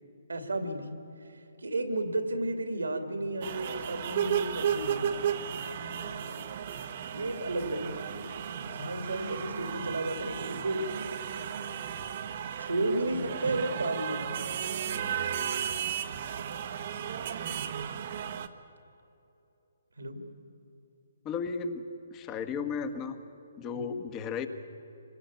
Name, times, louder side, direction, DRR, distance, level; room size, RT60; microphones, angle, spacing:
voice 1, 0.3-0.9 1.2-5.3 6.3-6.4 7.1-8.3 8.6-10.9 12.6-14.3 15.7-15.8 20.0-20.2 23.7-23.8, right 2 dB, 85° right, 7 dB, 2.6 m, -33 dB
sound 1, 3.4-18.5, right 8 dB, 50° right, 1.2 m, -34 dB
voice 2, 21.3-21.9 22.1-23.2 23.6-24.5, left 5 dB, 25° left, 9 dB, 1.6 m, -34 dB
25.5 x 19.5 x 8.6 m, 2.9 s
figure-of-eight pair, 140°, 0 cm